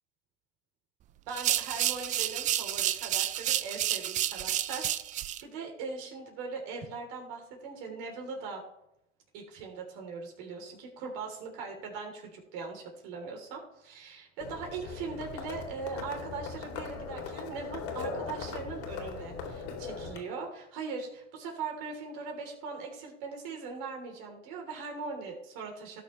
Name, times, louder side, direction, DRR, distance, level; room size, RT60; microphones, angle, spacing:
sound 1, 1.3-5.4, right 12 dB, 20° right, 0.4 m, -30 dB
voice 1, 1.3-8.6 9.3-26.0, right 4 dB, 50° right, 1 dB, 3.3 m, -40 dB
Livestock farm animals working animals, 14.4-20.2, left 5 dB, 50° left, 2.8 m, -39 dB
17.5 x 6.6 x 3.2 m, 0.80 s
hypercardioid pair, 105°, 37 cm